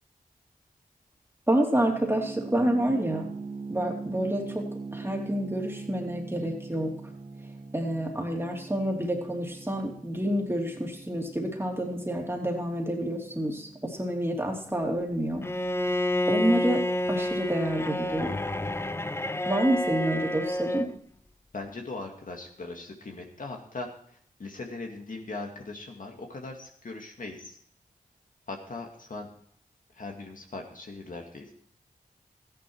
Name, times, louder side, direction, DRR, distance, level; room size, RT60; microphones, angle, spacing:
voice 1, 1.5-3.3 3.7-6.9 7.7-15.4 16.3-18.4 19.4-20.9, right 1 dB, 15° right, 1 dB, 2.9 m, -28 dB
sound 1, 1.8-16.6, right 4 dB, 50° right, 2.3 m, -42 dB
Bowed string instrument, 15.4-20.9, left 1 dB, 15° left, 0.6 m, -29 dB
voice 2, 21.5-27.6 28.5-29.3 29.9-31.5, left 3 dB, 60° left, 2 dB, 2.2 m, -39 dB
13.5 x 10.5 x 4.6 m, 0.63 s
cardioid pair, 55°, 15 cm